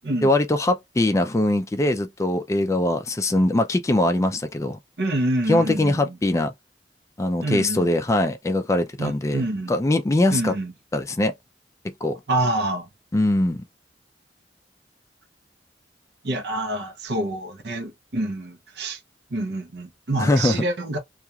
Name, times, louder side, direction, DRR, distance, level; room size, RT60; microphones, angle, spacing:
voice 1, 0.2-4.8 5.5-6.5 7.2-9.4 9.7-10.6 10.9-11.3 11.8-12.2 13.1-13.6 20.2-20.6, left 1 dB, 15° left, 0.3 m, -22 dB
voice 2, 5.0-6.1 7.4-7.9 9.0-9.7 10.3-10.7 12.3-12.9 16.2-19.0 19.3-21.0, right 1 dB, 70° right, 0.7 m, -27 dB
2.8 x 2.4 x 2.2 m
head